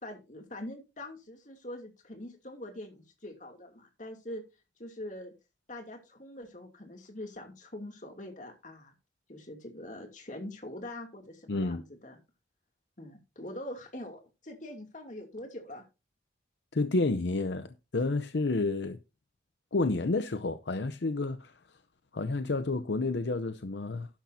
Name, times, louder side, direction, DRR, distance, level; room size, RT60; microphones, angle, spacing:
voice 1, 0.0-4.4 4.8-5.3 5.7-8.9 9.3-12.2 13.0-15.8, left 1 dB, 40° left, 2.7 m, -43 dB
voice 2, 11.5-11.8 16.7-19.0 19.7-21.5 22.1-24.1, left 3 dB, 70° left, 0.7 m, -30 dB
12.0 x 10.5 x 2.8 m
head